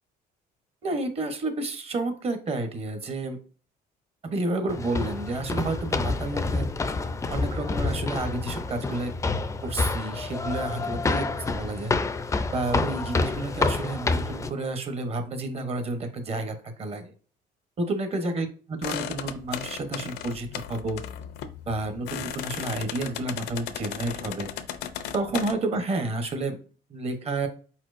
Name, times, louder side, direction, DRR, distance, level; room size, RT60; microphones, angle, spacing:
voice 1, 0.8-3.4 4.2-6.7 7.3-9.1 9.6-11.9 12.5-17.1 17.8-21.0 21.7-24.5 25.1-26.6 26.9-27.5, right 2 dB, 35° right, 7 dB, 0.9 m, -30 dB
sound 1, 4.7-14.5, left 3 dB, 20° left, 0.4 m, -28 dB
sound 2, 18.8-25.5, left 9 dB, 75° left, 0.6 m, -36 dB
4.5 x 4.3 x 2.5 m, 0.39 s
cardioid pair, 110°, 17 cm